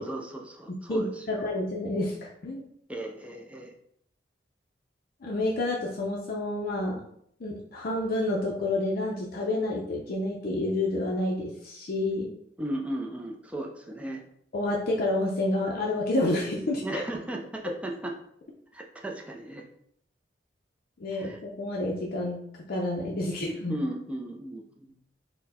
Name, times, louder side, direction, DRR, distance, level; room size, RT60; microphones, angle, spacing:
voice 1, 0.0-1.4 2.9-3.7 12.6-14.2 16.8-18.2 18.7-19.6 21.1-21.4 23.7-25.0, right 1 dB, 5° right, 0 dB, 0.4 m, -36 dB
voice 2, 0.9-2.6 5.2-7.0 7.4-12.3 14.5-17.0 21.0-22.4 22.7-23.8, left 2 dB, 55° left, -2 dB, 0.5 m, -29 dB
4.3 x 2.1 x 4.1 m, 0.70 s
head